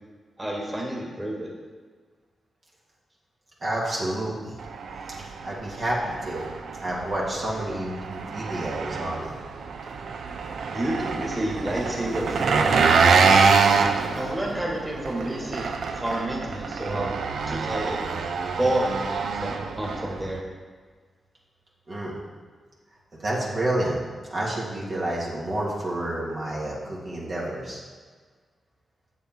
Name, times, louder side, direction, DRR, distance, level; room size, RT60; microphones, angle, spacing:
voice 1, 0.4-1.5 10.7-13.6 14.1-17.2 17.5-18.0 18.6-20.4, right 1 dB, 15° right, -3 dB, 2.1 m, -29 dB
voice 2, 3.6-4.6 5.1-9.3 21.9-22.2 23.2-24.0 24.3-27.8, right 1 dB, 55° right, -5 dB, 2.1 m, -29 dB
Engine, 4.6-20.4, right 5 dB, 80° right, 0.6 m, -25 dB
7.6 x 6.8 x 4.6 m, 1.5 s
cardioid pair, 65°, 0 cm